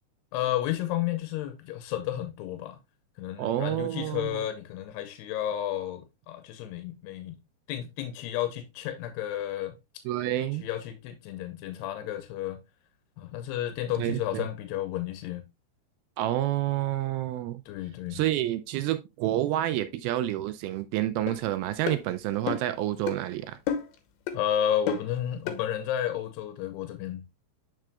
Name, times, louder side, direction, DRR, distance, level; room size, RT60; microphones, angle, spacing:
voice 1, 0.3-2.8 3.2-7.4 7.7-9.7 10.6-12.6 13.2-15.4 17.7-18.2 24.3-27.2, left 11 dB, 90° left, 2.8 m, -32 dB
voice 2, 3.4-4.5 10.1-10.6 14.0-14.5 16.2-17.6 18.1-23.6, right 13 dB, 80° right, 2.2 m, -29 dB
sound 1, 21.3-21.4 21.9-22.0 22.5-22.7 23.1-23.2 23.7-24.0 24.3-24.4 24.9-25.1 25.5-25.6, left 7 dB, 75° left, 2.4 m, -31 dB
7.6 x 6.1 x 2.2 m
omnidirectional pair, 4.7 m